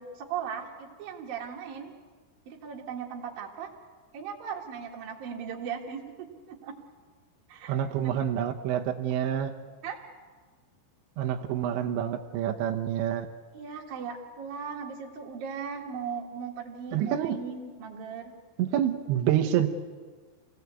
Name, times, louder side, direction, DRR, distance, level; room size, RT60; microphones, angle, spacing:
voice 1, 0.0-1.9 2.5-3.7 4.1-6.7 7.5-8.1 9.8-10.0 13.5-18.3, right 6 dB, 55° right, -1 dB, 3.0 m, -38 dB
voice 2, 7.7-9.5 11.2-13.3 16.9-17.4 18.6-19.7, right 10 dB, 75° right, 3 dB, 3.0 m, -27 dB
28.0 x 17.5 x 8.3 m, 1.5 s
omnidirectional pair, 5.7 m